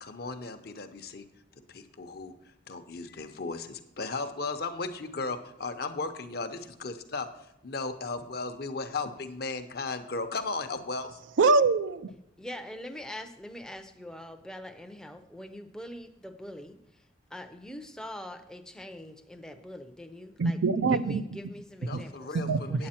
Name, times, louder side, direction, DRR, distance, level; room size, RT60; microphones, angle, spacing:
voice 1, 0.0-1.2 1.7-2.3 2.7-7.3 7.6-11.2 21.8-22.9, left 3 dB, 55° left, 8 dB, 0.7 m, -36 dB
voice 2, 11.4-12.1 20.4-21.2 21.9-22.0 22.3-22.9, right 4 dB, 85° right, 13 dB, 0.4 m, -24 dB
voice 3, 12.4-17.1 17.3-20.6 20.9-22.4 22.7-22.9, left 1 dB, 5° left, 6 dB, 0.5 m, -43 dB
8.7 x 8.3 x 4.3 m, 0.82 s
head